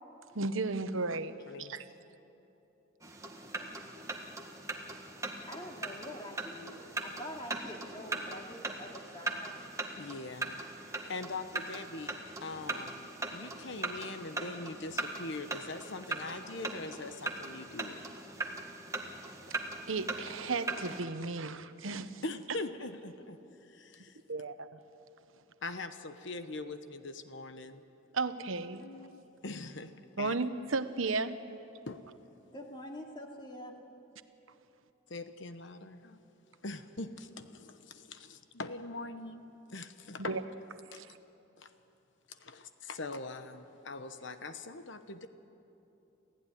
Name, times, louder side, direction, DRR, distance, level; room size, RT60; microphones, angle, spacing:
voice 1, 0.3-1.3 1.6-1.8 19.9-22.2 24.3-24.8 28.1-28.8 30.2-31.4 40.3-40.4 40.9-41.1, right 3 dB, 80° right, 10 dB, 1.1 m, -34 dB
sound 1, 3.0-21.0, right 2 dB, 15° right, 1.7 m, -40 dB
voice 2, 5.5-9.5 32.5-33.7, left 1 dB, 20° left, 1 dB, 2.6 m, -45 dB
voice 3, 10.0-10.6 10.8-18.0 22.2-24.2 25.6-27.8 28.8-29.9 30.2-30.4 31.9-32.0 35.1-36.2 36.6-40.4 40.9-41.0 41.6-41.7 42.3-45.3, left 3 dB, 65° left, 9 dB, 1.1 m, -42 dB
28.5 x 16.0 x 9.9 m, 2.9 s
head